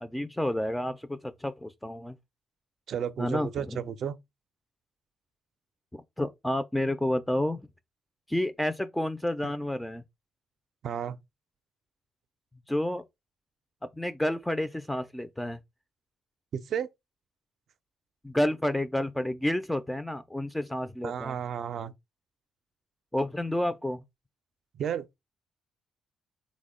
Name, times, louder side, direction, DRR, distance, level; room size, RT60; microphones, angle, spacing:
voice 1, 0.0-2.2 3.2-3.8 6.2-7.6 8.3-10.0 12.7-13.0 14.0-15.6 18.2-21.4 23.1-24.0, left 1 dB, 5° left, 0.3 m, -30 dB
voice 2, 2.9-4.1 9.4-9.5 10.8-11.2 16.5-16.9 21.0-21.9 24.7-25.1, right 8 dB, 65° right, 0.4 m, -32 dB
3.5 x 2.1 x 3.6 m
cardioid pair, 90°, 0 cm